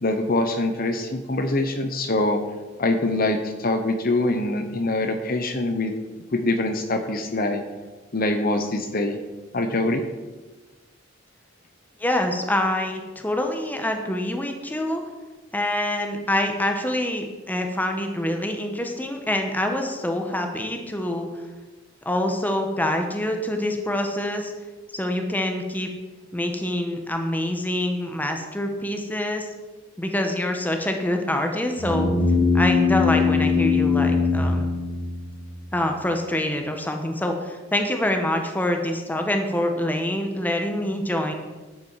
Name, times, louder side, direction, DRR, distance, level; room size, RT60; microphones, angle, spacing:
voice 1, 0.0-2.4 2.8-5.9 6.3-7.6 8.1-9.2 9.5-10.0, left 2 dB, 45° left, 6 dB, 0.9 m, -24 dB
voice 2, 12.0-15.0 15.5-21.3 22.0-24.5 24.9-25.9 26.3-29.5 30.0-32.1 32.5-34.7 35.7-41.3, left 1 dB, 10° left, 4 dB, 1.1 m, -25 dB
sound 1, 31.8-35.5, left 4 dB, 85° left, 2.8 m, -21 dB
11.5 x 8.5 x 4.7 m, 1.3 s
head